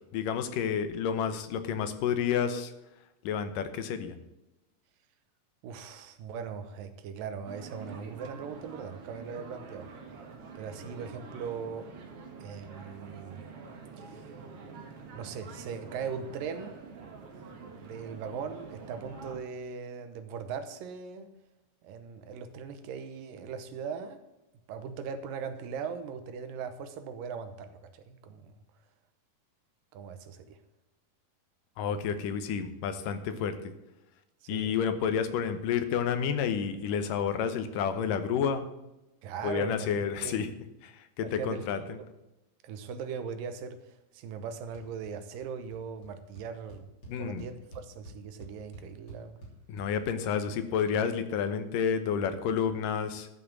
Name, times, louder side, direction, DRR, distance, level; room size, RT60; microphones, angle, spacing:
voice 1, 0.0-2.7 3.2-4.1 31.8-33.7 34.5-38.6 39.4-40.5 40.8-42.0 47.1-47.4 49.7-53.3, left 7 dB, 70° left, 10 dB, 2.5 m, -30 dB
voice 2, 5.6-9.9 10.6-11.9 12.4-13.4 14.0-14.2 15.1-16.8 17.8-21.3 21.8-24.2 24.7-28.5 29.9-30.6 34.4-34.7 39.2-40.4 41.2-41.6 42.0-42.1 42.6-46.9 47.2-49.4, right 6 dB, 75° right, 9 dB, 2.5 m, -39 dB
sound 1, 7.5-19.4, right 4 dB, 50° right, 1.9 m, -46 dB
sound 2, 44.7-45.1 45.4-45.8 46.0-46.1 46.4-49.9, right 2 dB, 35° left, 3.5 m, -48 dB
13.0 x 5.7 x 7.3 m, 0.96 s
omnidirectional pair, 4.2 m